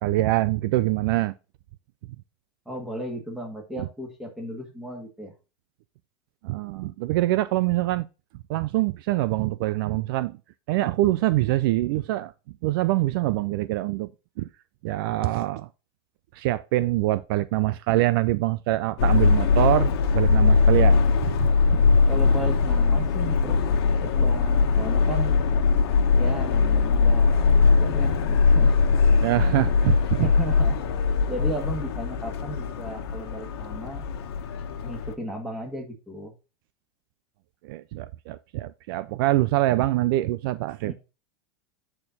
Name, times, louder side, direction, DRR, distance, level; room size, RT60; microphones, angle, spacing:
voice 1, 0.0-1.3 6.4-8.0 8.5-10.4 10.7-12.3 12.6-14.1 14.4-14.5 14.8-15.7 16.3-22.0 29.2-30.3 37.6-40.9, right 16 dB, 55° right, 0.4 m, -24 dB
voice 2, 2.7-5.3 22.1-23.6 24.0-25.5 26.2-28.8 30.2-30.8 31.3-34.0 34.8-36.3 40.8-40.9, right 1 dB, 5° right, 1.9 m, -35 dB
Subway metro underground, 19.0-35.1, left 4 dB, 70° left, 1.3 m, -21 dB
8.6 x 4.4 x 4.0 m
supercardioid pair, 155°, 14 cm